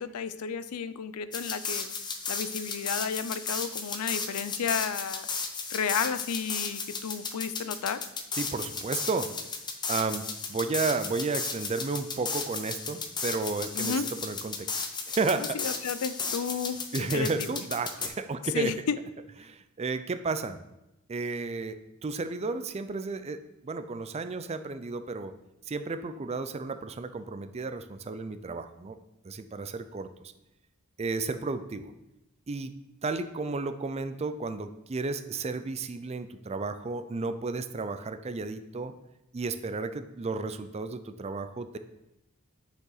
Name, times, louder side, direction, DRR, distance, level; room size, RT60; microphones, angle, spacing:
voice 1, 0.0-1.9 2.3-5.3 5.7-8.0 13.7-14.1 15.3-17.5 18.5-19.0, left 6 dB, 85° left, 14 dB, 0.5 m, -32 dB
sound 1, 1.3-18.1, left 5 dB, 20° left, 0.6 m, -35 dB
voice 2, 8.3-9.3 9.9-14.7 15.1-15.6 16.9-18.7 19.4-20.6 21.1-25.3 25.7-29.0 29.2-30.1 31.0-31.9 32.5-32.7 33.0-38.9 39.3-41.8, right 3 dB, 30° right, 11 dB, 0.4 m, -33 dB
9.0 x 5.3 x 4.0 m, 0.91 s
head